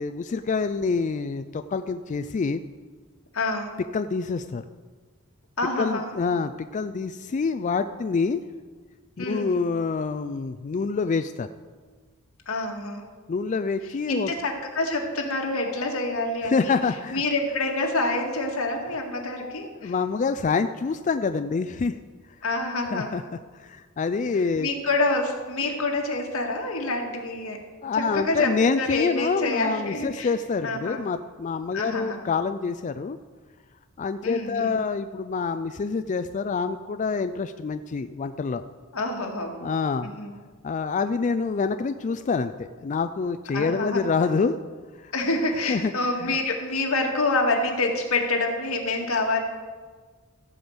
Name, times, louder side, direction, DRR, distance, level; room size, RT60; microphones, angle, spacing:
voice 1, 0.0-2.6 3.9-4.6 5.8-8.4 9.2-11.5 13.3-14.3 16.4-17.2 19.1-19.2 19.8-22.0 22.9-23.2 23.6-24.7 27.8-33.2 34.0-38.6 39.6-40.1 40.6-44.6 45.0-45.1 45.7-45.9 46.2-46.4, left 4 dB, 35° left, 10 dB, 0.3 m, -26 dB
voice 2, 3.3-3.7 5.6-6.1 9.2-9.5 12.5-13.0 14.1-16.8 17.1-19.9 22.4-23.1 24.6-27.6 27.9-30.3 30.6-31.0 31.7-32.3 34.2-34.8 38.9-39.5 40.0-40.3 43.5-44.1 45.1-49.4, left 2 dB, 80° left, 1 dB, 1.9 m, -27 dB
15.0 x 5.3 x 7.9 m, 1.5 s
head